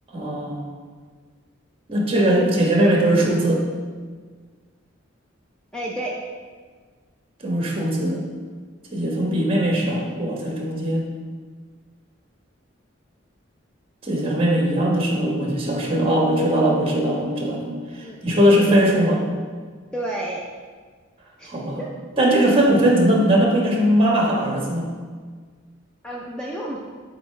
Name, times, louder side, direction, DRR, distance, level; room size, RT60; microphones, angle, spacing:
voice 1, 0.1-0.6 1.9-3.6 7.4-8.2 8.9-11.1 14.0-17.7 18.2-19.2 21.5-21.8 22.2-24.9, right 1 dB, 30° right, -1 dB, 1.3 m, -20 dB
voice 2, 5.7-6.1 18.0-18.6 19.9-20.4 21.4-21.5 21.8-21.9 26.0-26.8, right 1 dB, 5° left, -4 dB, 0.5 m, -31 dB
8.4 x 4.6 x 3.3 m, 1.6 s
head